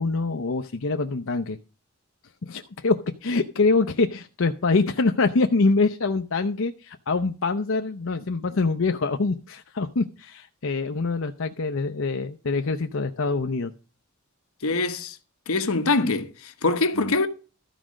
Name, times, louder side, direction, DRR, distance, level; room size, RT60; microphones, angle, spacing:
voice 1, 0.0-1.6 2.5-13.7 17.0-17.1, left 3 dB, 65° left, 0.7 m, -25 dB
voice 2, 14.6-15.2 15.5-17.3, left 3 dB, 90° left, 1.1 m, -24 dB
13.0 x 5.1 x 6.2 m
head